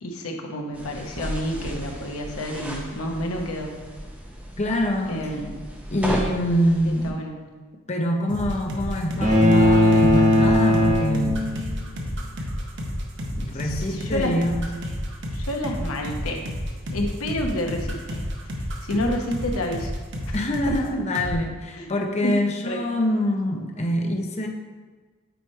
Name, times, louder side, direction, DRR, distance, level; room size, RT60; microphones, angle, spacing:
voice 1, 0.0-3.8 5.1-5.5 6.8-7.3 13.6-14.3 15.3-16.5 16.9-18.2 18.9-19.9 20.3-20.4 20.7-21.0 21.7-21.9 22.2-22.3 22.7-22.8, equal, 90° left, 1 dB, 0.9 m, -29 dB
sound 1, 0.7-7.1, equal, 5° right, 0.7 m, -34 dB
voice 2, 4.6-5.2 5.9-7.2 7.9-11.6 13.4-14.7 20.3-24.5, equal, 30° left, 2 dB, 0.6 m, -25 dB
sound 2, 8.3-20.9 21.2-21.4, equal, 55° right, 1.0 m, -30 dB
sound 3, 9.2-11.8, left 1 dB, 35° right, 1.0 m, -18 dB
9.1 x 3.1 x 4.6 m, 1.4 s
head